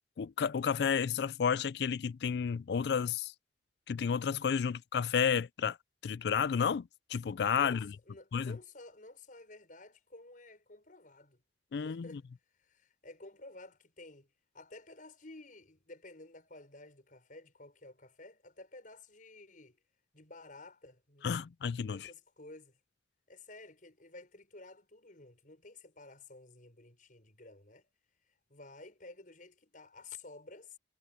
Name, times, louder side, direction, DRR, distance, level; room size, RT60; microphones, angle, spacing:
voice 1, 0.2-3.3 3.9-5.8 6.0-7.9 8.3-8.6 11.7-12.2 21.2-22.1, left 7 dB, 65° left, 0.4 m, -31 dB
voice 2, 7.5-11.4 11.7-12.2 12.6-14.3 14.5-19.8 20.1-21.5 21.9-22.8 23.3-27.9 28.5-30.8, left 2 dB, 50° left, 5.7 m, -52 dB
head